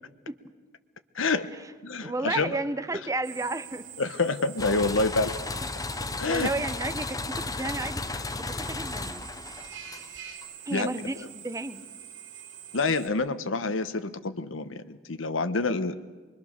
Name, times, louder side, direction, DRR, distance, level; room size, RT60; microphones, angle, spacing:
voice 1, 1.1-1.5 1.8-2.6 4.0-5.3 6.2-6.5 10.7-10.9 12.7-16.0, left 3 dB, 75° left, 11 dB, 1.1 m, -27 dB
voice 2, 2.0-3.9 6.2-9.3 10.7-11.8, right 2 dB, 15° right, 10 dB, 0.8 m, -32 dB
Drill, 3.2-13.1, right 9 dB, 65° right, 2.8 m, -45 dB
sound 1, 4.6-10.4, left 3 dB, 20° left, 0.6 m, -34 dB
25.5 x 23.5 x 6.6 m, 1.4 s
head